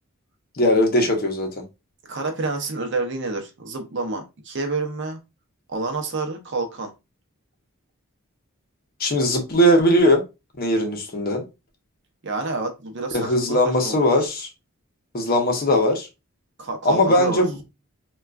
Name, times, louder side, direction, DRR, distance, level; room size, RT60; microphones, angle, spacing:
voice 1, 0.6-1.5 9.0-10.2 10.6-11.4 13.1-14.5 15.1-16.1 16.8-17.6, equal, 40° left, 0.6 m, -19 dB
voice 2, 2.1-5.2 5.7-6.9 12.2-14.1 16.6-17.5, right 3 dB, 50° right, 0.6 m, -28 dB
3.6 x 2.3 x 2.3 m
head